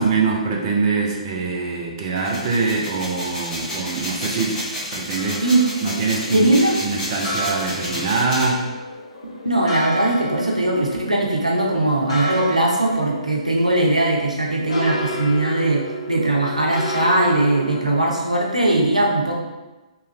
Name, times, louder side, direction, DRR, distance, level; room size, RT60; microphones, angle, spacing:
voice 1, 0.0-4.6 4.9-5.4 5.8-6.5 6.8-8.7, right 4 dB, 35° right, -1 dB, 0.5 m, -23 dB
sound 1, 2.1-8.5, left 1 dB, 15° left, 0.8 m, -31 dB
sound 2, 5.2-17.8, equal, 65° left, 0.8 m, -32 dB
voice 2, 6.3-6.8 9.2-15.8 16.1-19.4, right 1 dB, 90° right, -2 dB, 0.6 m, -19 dB
2.9 x 2.4 x 3.0 m, 1.1 s
figure-of-eight pair, 125°, 4 cm